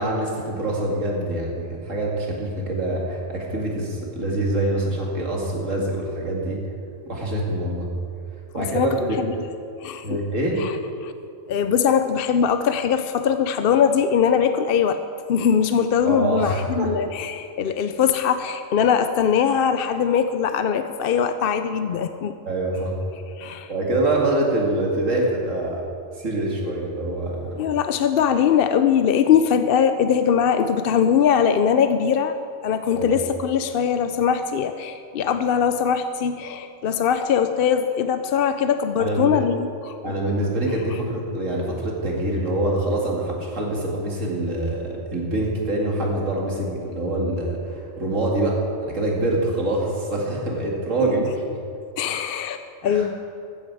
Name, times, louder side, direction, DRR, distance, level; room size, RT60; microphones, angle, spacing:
voice 1, 0.0-6.6 7.1-7.9 8.5-9.2 10.0-10.6 16.0-16.9 22.5-23.0 23.7-25.8 26.2-27.6 32.9-33.1 39.0-39.4 40.0-51.6 52.8-53.1, right 1 dB, 80° right, -2 dB, 2.6 m, -25 dB
voice 2, 8.6-9.3 9.8-10.2 10.6-11.1 11.5-15.0 15.3-22.3 23.4-23.7 27.6-40.1 51.1-51.2 52.0-53.1, left 7 dB, 60° left, 9 dB, 0.7 m, -21 dB
14.5 x 14.0 x 4.8 m, 2.5 s
omnidirectional pair, 1.3 m